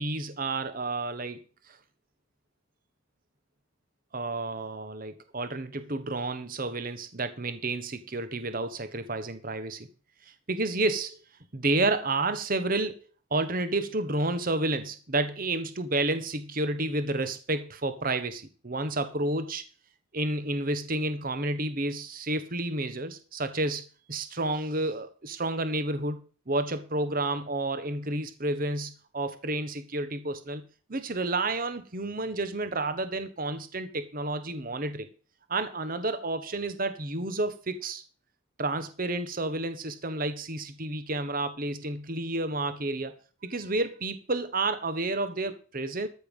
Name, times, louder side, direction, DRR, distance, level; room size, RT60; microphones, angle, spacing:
voice 1, 0.0-1.4 1.7-1.8 4.1-9.9 10.5-11.2 11.5-13.0 13.3-19.6 20.1-26.2 26.5-30.6 30.9-35.1 35.5-38.0 38.6-43.1 43.4-46.1, right 2 dB, 45° right, 10 dB, 1.2 m, -30 dB
13.5 x 6.9 x 5.4 m, 0.37 s
head